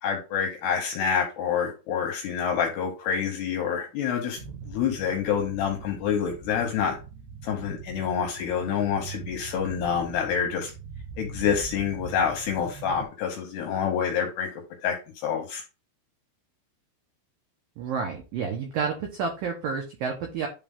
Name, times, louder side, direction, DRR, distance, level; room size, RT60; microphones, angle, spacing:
voice 1, 0.0-4.4 4.7-7.0 7.4-10.7 11.2-15.6, left 7 dB, 75° left, 3 dB, 2.5 m, -27 dB
sound 1, 4.3-13.0, right 6 dB, 60° right, 2.0 m, -42 dB
voice 2, 17.8-20.5, right 5 dB, 80° right, 2 dB, 2.0 m, -30 dB
10.5 x 3.7 x 3.7 m, 0.31 s
omnidirectional pair, 5.7 m